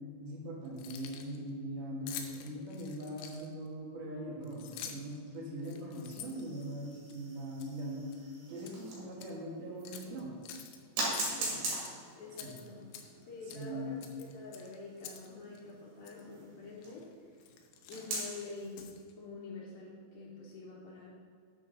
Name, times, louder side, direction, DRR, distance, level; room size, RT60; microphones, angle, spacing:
voice 1, 0.2-8.1 8.5-10.3 12.4-12.5 13.5-14.0, right 1 dB, 60° right, -3 dB, 3.0 m, -41 dB
Keys jangling, 0.7-1.4 2.1-3.7 4.4-5.2 5.6-7.2 7.6-7.8 8.1-8.8 9.1-9.3 9.8-10.8 11.1-11.9 12.3-13.2 13.5-13.7 14.0-15.3 15.5-15.6 16.0-16.2 16.8-17.0 17.4-19.1, left 8 dB, 90° left, 2.9 m, -47 dB
sound 1, 6.3-9.3 9.8-9.9 11.0-17.0 17.9-18.6, right 2 dB, 75° right, 4.2 m, -41 dB
voice 2, 11.2-11.6 12.2-12.8 13.3-17.4 17.9-18.9 19.2-21.1, left 3 dB, 70° left, -5 dB, 2.7 m, -47 dB
9.8 x 7.6 x 4.0 m, 2.1 s
omnidirectional pair, 4.7 m